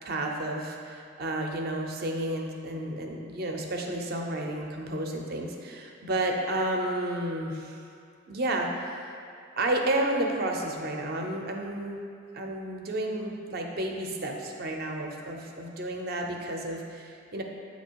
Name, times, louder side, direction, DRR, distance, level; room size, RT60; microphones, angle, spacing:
voice 1, 0.0-7.8 8.3-9.1 9.6-12.0 12.3-17.4, right 1 dB, 50° right, 2 dB, 0.6 m, -31 dB
7.7 x 2.8 x 4.5 m, 2.4 s
head